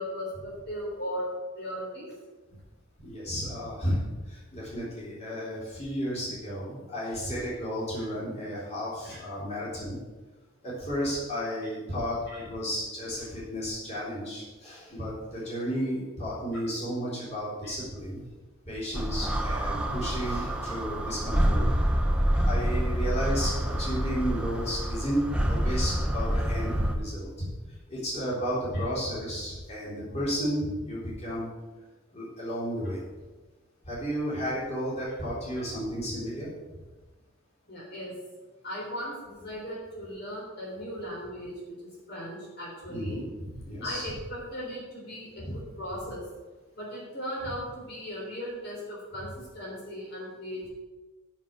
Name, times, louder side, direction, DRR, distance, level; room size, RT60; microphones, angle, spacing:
voice 1, 0.0-2.1 9.1-9.2 12.3-12.4 17.6-17.7 28.7-28.8 37.7-38.2 38.6-41.5 41.8-43.2 43.8-46.2 46.8-50.7, equal, 50° left, -5 dB, 3.6 m, -37 dB
voice 2, 3.0-4.0 4.3-10.0 10.6-12.2 12.5-18.2 18.7-21.7 22.4-27.5 27.9-31.5 32.1-33.1 33.8-36.5 42.9-44.1 45.4-45.6, equal, 30° left, -8 dB, 3.7 m, -33 dB
sound 1, 18.9-26.9, equal, 5° right, 0.7 m, -27 dB
7.4 x 7.2 x 8.3 m, 1.2 s
head